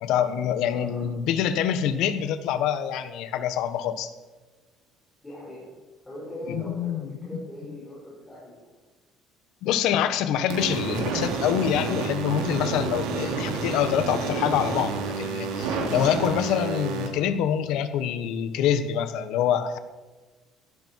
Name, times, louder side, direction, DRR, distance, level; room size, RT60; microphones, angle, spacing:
voice 1, 0.0-4.1 6.5-7.4 9.6-19.8, left 9 dB, 70° left, 11 dB, 1.3 m, -26 dB
voice 2, 0.6-1.1 5.2-5.7 6.0-8.7, left 1 dB, 10° left, -7 dB, 5.7 m, -40 dB
sound 1, 10.5-17.1, right 4 dB, 85° right, 3.5 m, -29 dB
16.5 x 15.0 x 4.7 m, 1.3 s
cardioid pair, 155°, 0 cm